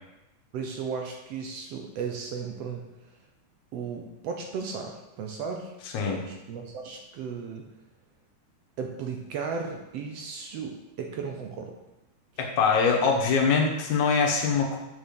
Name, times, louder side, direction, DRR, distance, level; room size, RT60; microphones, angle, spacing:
voice 1, 0.5-2.8 3.7-5.7 6.0-7.7 8.8-11.8, right 5 dB, 70° right, 2 dB, 1.7 m, -35 dB
voice 2, 12.4-14.8, left 5 dB, 75° left, 1 dB, 2.6 m, -23 dB
6.9 x 6.9 x 5.2 m, 0.97 s
omnidirectional pair, 3.4 m